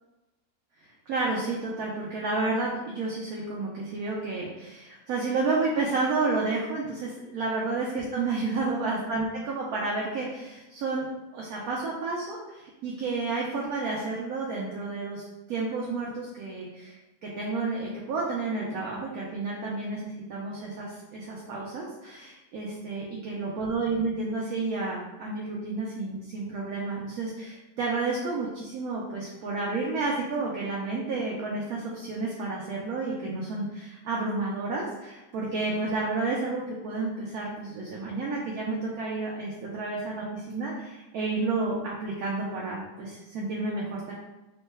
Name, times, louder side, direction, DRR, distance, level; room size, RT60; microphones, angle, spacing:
voice 1, 1.1-11.1 11.3-15.2 15.5-44.1, right 3 dB, 75° right, -4 dB, 1.0 m, -31 dB
3.0 x 2.1 x 3.2 m, 1.0 s
omnidirectional pair, 1.6 m